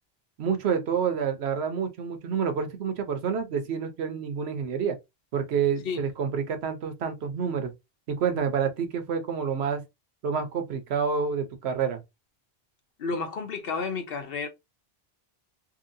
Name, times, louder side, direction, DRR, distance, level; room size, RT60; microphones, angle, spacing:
voice 1, 0.4-5.0 5.3-7.7 8.1-9.8 10.2-12.0, right 6 dB, 80° right, 1.0 m, -28 dB
voice 2, 13.0-14.5, left 4 dB, 65° left, 0.9 m, -31 dB
2.8 x 2.8 x 2.6 m
omnidirectional pair, 1.1 m